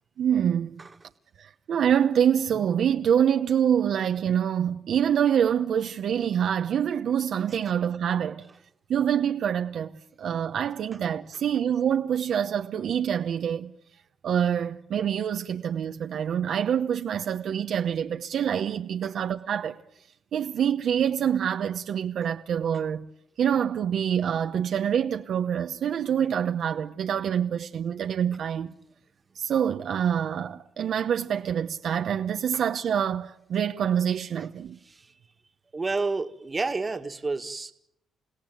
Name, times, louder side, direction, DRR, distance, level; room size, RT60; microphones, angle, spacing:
voice 1, 0.2-0.8 1.4-8.4 8.9-9.9 10.2-13.7 14.2-19.8 20.3-23.1 23.4-28.7 29.4-34.8, right 8 dB, 65° right, 0.9 m, -26 dB
voice 2, 35.7-37.7, right 3 dB, 25° right, 1.8 m, -30 dB
29.5 x 16.5 x 9.3 m
cardioid pair, 90°, 0 cm